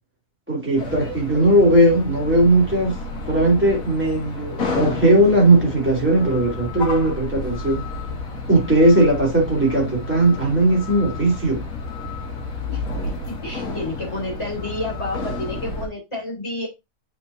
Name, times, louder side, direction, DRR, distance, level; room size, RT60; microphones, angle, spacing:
voice 1, 0.5-3.0 3.3-7.8 8.5-11.6, right 1 dB, 5° right, 2.9 m, -18 dB
sound 1, 0.8-15.9, left 3 dB, 60° left, 1.7 m, -31 dB
voice 2, 1.0-1.5 12.7-12.8 13.3-16.7, left 1 dB, 20° left, 3.8 m, -30 dB
8.6 x 4.2 x 2.7 m
omnidirectional pair, 1.6 m